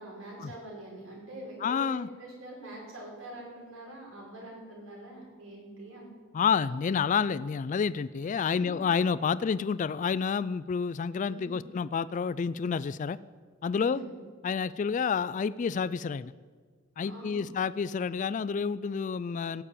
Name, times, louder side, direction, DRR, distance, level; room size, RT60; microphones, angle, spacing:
voice 1, 0.0-6.1 8.4-8.8 11.3-11.6 13.7-14.1 17.0-17.4, right 1 dB, 80° right, -3 dB, 5.5 m, -44 dB
voice 2, 1.6-2.1 6.3-13.2 13.6-14.0 14.4-16.3 17.0-19.6, left 6 dB, 40° left, 16 dB, 0.3 m, -29 dB
17.5 x 6.8 x 8.8 m, 1.5 s
head